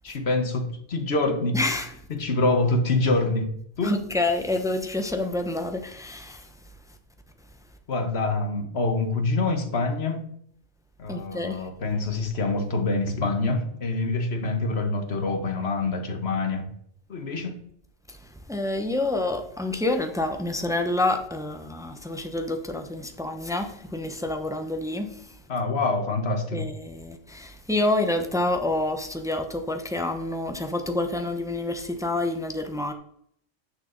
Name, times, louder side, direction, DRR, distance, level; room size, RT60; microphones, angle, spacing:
voice 1, 0.0-1.6 2.1-3.5 3.8-4.0 7.9-10.2 11.0-16.6 17.1-17.6 25.5-26.7, left 3 dB, 60° left, 1.5 m, -26 dB
voice 2, 1.5-2.0 3.8-6.5 11.1-11.7 18.1-25.4 26.5-32.9, left 2 dB, 5° right, 0.7 m, -28 dB
9.5 x 6.5 x 3.9 m
omnidirectional pair, 1.3 m